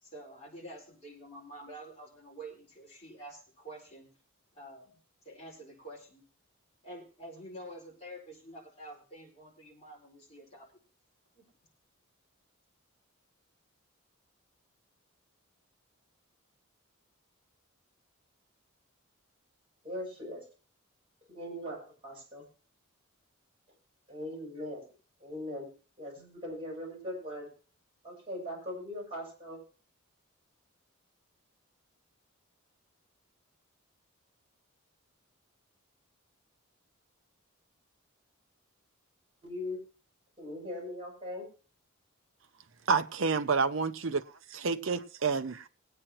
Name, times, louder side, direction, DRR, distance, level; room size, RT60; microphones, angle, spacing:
voice 1, 0.0-4.1 4.5-5.0 5.2-6.2 6.8-10.7 11.3-11.4, right 1 dB, 30° left, 4.4 m, -48 dB
voice 2, 19.8-20.4 21.3-21.8 22.0-22.4 24.1-24.8 25.2-25.7 26.0-27.5 28.0-29.6 39.4-39.8 40.4-41.5, left 1 dB, 25° right, 6.8 m, -40 dB
voice 3, 42.9-44.2 44.5-45.7, right 4 dB, 65° right, 0.7 m, -29 dB
21.5 x 8.8 x 2.9 m
head